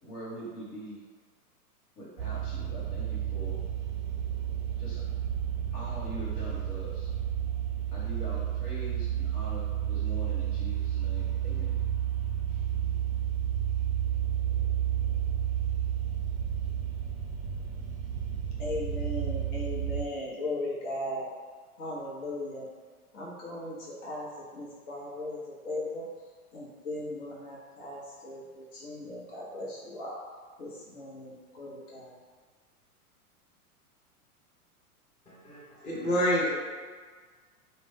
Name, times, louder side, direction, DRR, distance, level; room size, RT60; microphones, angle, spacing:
voice 1, 0.0-1.0 2.0-3.6 4.8-5.0 5.7-7.1 7.9-11.7 12.5-12.6, equal, 75° left, -6 dB, 1.3 m, -43 dB
sound 1, 2.2-20.0, right 10 dB, 45° right, 0.5 m, -31 dB
voice 2, 18.6-21.3 21.8-22.7 23.1-26.1 26.5-30.2 30.6-32.2, left 1 dB, 55° left, -5 dB, 0.9 m, -37 dB
voice 3, 35.3-36.5, equal, 15° left, -8 dB, 0.7 m, -28 dB
2.4 x 2.1 x 3.4 m, 1.5 s
hypercardioid pair, 105°, 46 cm